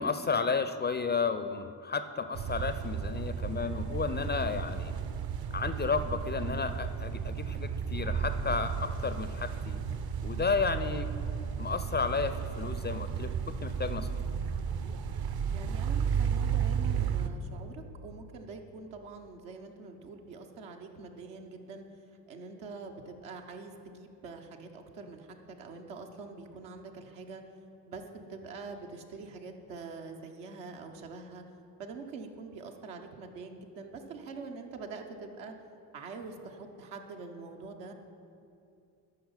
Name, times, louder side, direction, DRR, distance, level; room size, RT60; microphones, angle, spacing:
voice 1, 0.0-4.9 5.5-9.8 10.2-11.1 11.6-13.3 13.6-14.1, left 5 dB, 20° left, 11 dB, 0.4 m, -32 dB
sound 1, 2.3-17.3, right 7 dB, 50° right, 0.8 m, -33 dB
voice 2, 15.5-21.9 22.3-27.4 27.9-31.4 31.8-35.5 35.9-37.9, right 4 dB, 75° right, 3 dB, 1.1 m, -45 dB
13.0 x 5.8 x 5.6 m, 2.6 s
hypercardioid pair, 45°, 50 cm